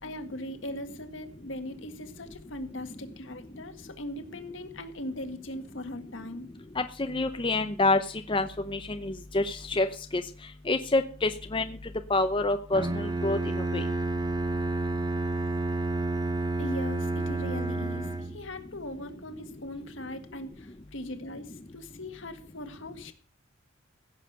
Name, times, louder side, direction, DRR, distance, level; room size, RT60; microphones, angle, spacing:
voice 1, 0.0-6.6 16.6-23.1, left 1 dB, 70° left, 7 dB, 1.8 m, -40 dB
voice 2, 6.8-8.0 8.3-9.9 10.1-10.2 10.7-11.8 12.1-13.8, left 2 dB, 25° left, 7 dB, 0.7 m, -27 dB
Bowed string instrument, 12.7-18.6, right 2 dB, 20° right, 1.1 m, -30 dB
16.0 x 7.4 x 6.8 m, 0.41 s
head